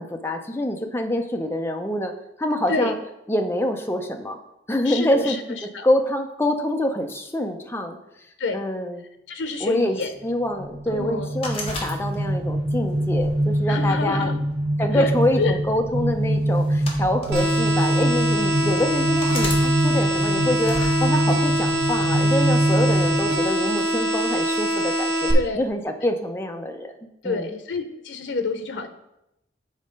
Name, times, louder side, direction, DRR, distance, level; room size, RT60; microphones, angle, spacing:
voice 1, 0.0-2.1 2.4-3.0 3.3-4.4 4.7-5.6 5.8-8.0 8.5-9.1 9.6-10.0 10.2-14.3 14.8-25.3 25.5-26.9 27.2-27.6, left 1 dB, 15° left, 4 dB, 0.6 m, -25 dB
voice 2, 4.8-5.9 8.4-8.6 9.3-10.1 10.9-11.3 13.7-14.4 14.9-15.1 15.4-15.6 25.3-25.6 27.2-28.9, left 4 dB, 85° left, 9 dB, 0.7 m, -28 dB
sound 1, 10.5-23.3, right 1 dB, 30° right, 1.1 m, -24 dB
sound 2, 11.4-12.5 13.1-14.3 15.2-15.5 16.5-17.6 18.3-18.4 19.2-19.6 20.6-21.0, left 2 dB, 35° left, 1.5 m, -33 dB
sound 3, 17.3-25.3, equal, 70° right, 1.2 m, -24 dB
7.3 x 4.3 x 5.2 m, 0.87 s
head